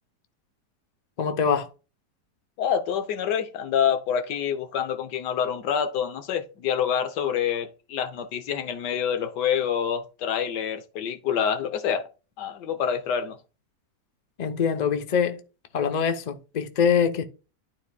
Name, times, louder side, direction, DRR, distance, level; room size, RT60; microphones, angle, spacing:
voice 1, 1.2-1.7 14.4-15.4 15.7-17.2, left 7 dB, 50° left, 0.5 m, -24 dB
voice 2, 2.6-12.1 12.4-13.4, left 8 dB, 80° left, 1.4 m, -27 dB
12.0 x 4.2 x 2.2 m
omnidirectional pair, 1.8 m